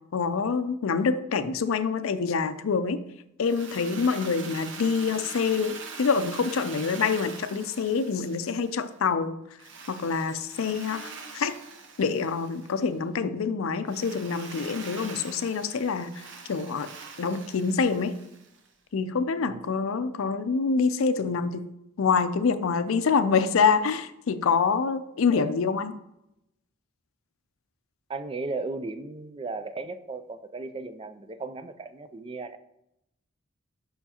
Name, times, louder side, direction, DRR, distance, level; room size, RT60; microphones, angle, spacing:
voice 1, 0.1-3.0 3.4-9.3 9.9-11.5 12.0-16.9 17.2-18.1 18.9-21.7 22.0-25.9, left 5 dB, 75° left, 12 dB, 0.4 m, -26 dB
Drill, 3.4-8.9 9.6-12.9 13.9-18.7, right 5 dB, 60° right, 0.8 m, -43 dB
voice 2, 28.1-32.6, right 3 dB, 25° right, 11 dB, 0.3 m, -36 dB
6.9 x 5.7 x 2.9 m, 0.84 s
head